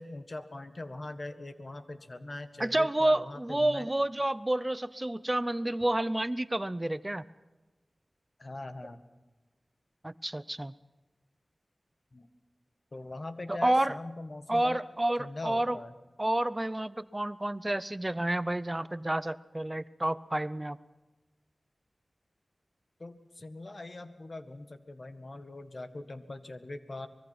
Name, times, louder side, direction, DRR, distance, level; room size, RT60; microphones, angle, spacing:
voice 1, 0.0-3.9 8.4-9.0 12.1-12.3 12.9-14.9 15.2-15.9 23.0-27.1, left 2 dB, 55° left, 9 dB, 1.7 m, -42 dB
voice 2, 2.6-7.2 10.0-10.7 13.5-13.9 14.5-15.8 16.2-20.8, right 1 dB, 25° right, 16 dB, 0.6 m, -29 dB
24.5 x 21.5 x 6.0 m, 1.2 s
wide cardioid pair, 45°, 0 cm